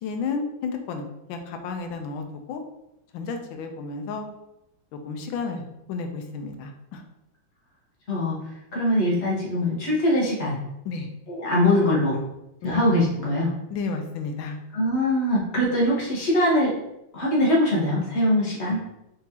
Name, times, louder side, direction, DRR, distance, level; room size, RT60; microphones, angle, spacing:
voice 1, 0.0-2.6 3.1-4.3 4.9-7.0 10.8-11.1 12.6-12.8 13.7-14.6, left 4 dB, 90° left, 5 dB, 1.4 m, -32 dB
voice 2, 8.7-10.6 11.3-12.2 12.6-13.5 14.7-16.7 17.1-18.8, left 1 dB, 40° left, -5 dB, 1.3 m, -22 dB
4.0 x 3.7 x 2.8 m, 0.88 s
omnidirectional pair, 2.1 m